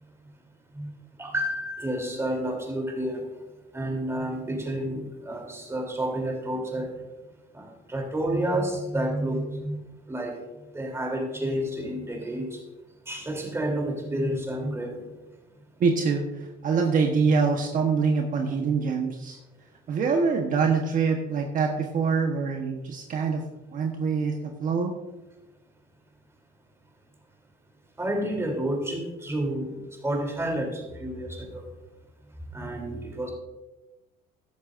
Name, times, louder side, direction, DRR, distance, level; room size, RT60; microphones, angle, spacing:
voice 1, 1.2-3.2 3.7-6.9 7.5-9.8 10.1-10.4 10.7-12.6 13.1-15.0 28.0-29.8 30.0-31.6 32.5-33.3, right 1 dB, 15° right, 1 dB, 3.3 m, -30 dB
voice 2, 15.8-19.4 19.9-23.4 23.7-24.9, right 5 dB, 50° right, 2 dB, 1.2 m, -25 dB
14.0 x 11.0 x 2.6 m, 1.0 s
cardioid pair, 110°, 17 cm